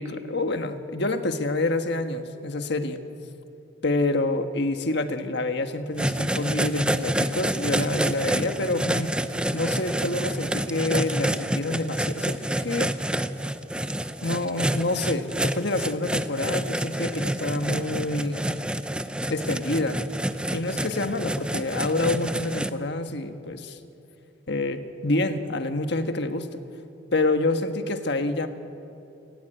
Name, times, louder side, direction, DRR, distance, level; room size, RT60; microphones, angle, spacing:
voice 1, 0.0-3.0 3.8-9.1 9.5-13.0 14.2-18.4 19.3-20.0 20.5-23.8 24.5-26.5 27.1-28.5, left 2 dB, 60° left, 7 dB, 1.5 m, -27 dB
sound 1, 6.0-22.7, right 1 dB, 5° right, 0.6 m, -28 dB
29.0 x 17.0 x 9.0 m, 2.8 s
head